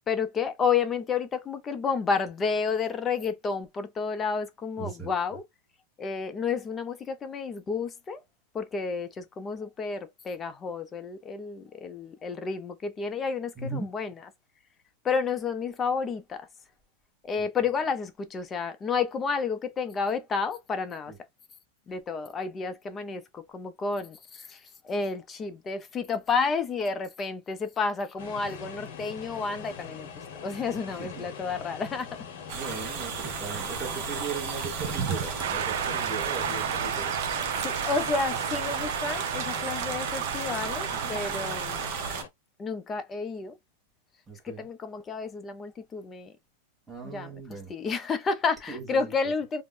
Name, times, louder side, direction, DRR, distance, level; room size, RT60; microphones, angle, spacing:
voice 1, 0.1-5.4 6.0-8.2 8.5-14.3 15.0-16.5 17.2-21.1 21.9-30.1 30.4-32.1 37.6-41.8 42.6-43.6 44.4-46.3 47.0-49.6, left 5 dB, 15° left, 0.4 m, -31 dB
voice 2, 4.8-5.1 13.6-13.9 31.0-31.2 32.5-37.1 40.9-41.2 44.3-44.6 46.9-47.7 48.7-48.8, right 4 dB, 5° right, 1.0 m, -38 dB
sound 1, 28.2-42.3, left 7 dB, 55° left, 0.8 m, -42 dB
sound 2, 32.5-42.2, right 7 dB, 40° right, 0.6 m, -33 dB
sound 3, 35.4-41.9, right 9 dB, 80° right, 0.4 m, -33 dB
2.4 x 2.0 x 3.6 m
supercardioid pair, 165°, 0 cm